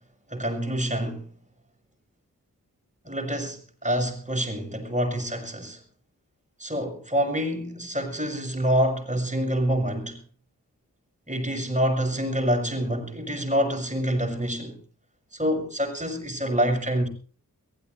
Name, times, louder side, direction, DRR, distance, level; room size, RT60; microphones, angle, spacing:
voice 1, 0.3-1.2 3.0-5.8 6.6-10.2 11.3-14.8 15.3-17.1, equal, 20° right, 6.3 m, -26 dB
22.5 x 16.5 x 3.2 m
wide cardioid pair, 60°, 34 cm